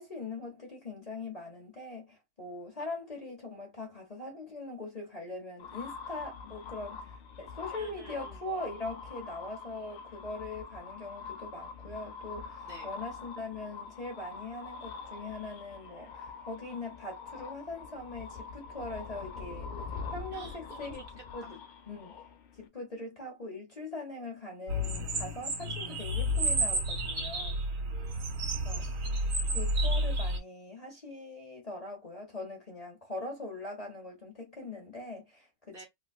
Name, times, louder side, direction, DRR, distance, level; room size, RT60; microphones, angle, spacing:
voice 1, 0.0-19.7 20.1-21.0 21.3-21.6 21.9-22.1 22.6-27.6 28.6-28.9 29.5-35.8, left 2 dB, 30° left, 1.0 m, -41 dB
sound 1, 5.6-22.7, left 5 dB, 70° left, 0.4 m, -44 dB
voice 2, 7.8-8.4 12.6-12.9 20.3-21.0 21.4-21.6 27.9-29.0 35.7-35.9, right 3 dB, 50° right, 1.0 m, -51 dB
sound 2, 24.7-30.4, right 1 dB, 85° right, 1.4 m, -31 dB
3.4 x 2.3 x 2.3 m
omnidirectional pair, 1.3 m